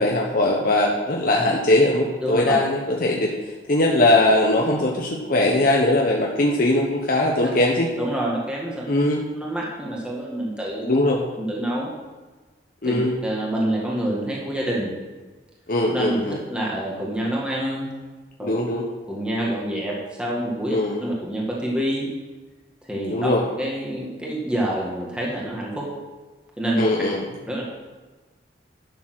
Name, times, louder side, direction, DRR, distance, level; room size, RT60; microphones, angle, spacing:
voice 1, 0.0-3.3 3.7-7.9 8.9-9.2 10.8-11.2 12.8-13.1 15.7-16.4 18.4-18.8 20.7-21.0 23.1-23.4 26.8-27.2, left 1 dB, 55° left, -1 dB, 1.2 m, -20 dB
voice 2, 2.2-2.6 7.4-7.6 8.0-8.9 9.4-10.9 11.4-11.9 12.8-14.9 15.9-17.9 18.4-18.5 19.1-20.8 21.0-22.1 22.8-23.3 23.6-25.9 26.6-26.8 27.5-27.6, right 1 dB, 5° right, -4 dB, 1.9 m, -27 dB
11.5 x 7.1 x 6.2 m, 1.3 s
head